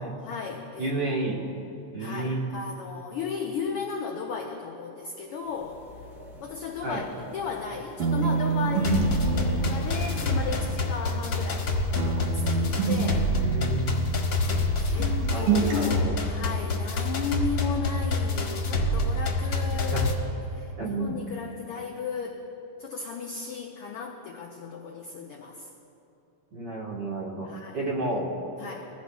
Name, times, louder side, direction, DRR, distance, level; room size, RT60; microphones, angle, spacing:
voice 1, 0.0-1.5 2.0-5.8 6.4-7.1 7.3-13.3 14.8-22.4 22.8-25.7 27.4-27.8 28.6-28.9, left 5 dB, 80° left, 1 dB, 1.3 m, -35 dB
voice 2, 0.8-1.5 1.9-2.4 6.8-7.1 13.4-13.9 15.3-16.2 19.7-20.1 20.8-21.2 26.5-27.5 27.7-28.4, right 2 dB, 50° right, -4 dB, 1.6 m, -31 dB
sound 1, 5.4-10.8, left 1 dB, ahead, 0.6 m, -43 dB
sound 2, 8.0-11.7 12.0-14.7 15.0-16.0, right 5 dB, 85° right, 2.7 m, -29 dB
sound 3, 8.8-20.1, left 2 dB, 50° left, 1.4 m, -27 dB
21.0 x 15.0 x 2.3 m, 2.8 s
omnidirectional pair, 3.4 m